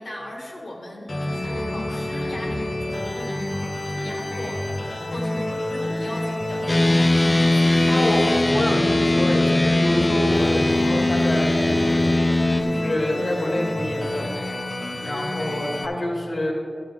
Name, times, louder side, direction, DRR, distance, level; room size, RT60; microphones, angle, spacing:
voice 1, 0.0-8.1, left 1 dB, 65° left, -1 dB, 1.8 m, -38 dB
sound 1, 1.1-15.9, left 1 dB, 45° left, 1.1 m, -29 dB
sound 2, 6.7-12.6, left 2 dB, 30° left, 0.7 m, -20 dB
voice 2, 7.9-12.1 12.6-14.3 15.0-16.5, left 1 dB, 85° left, -2 dB, 2.2 m, -27 dB
13.0 x 7.8 x 3.7 m, 2.3 s
wide cardioid pair, 85°, 0 cm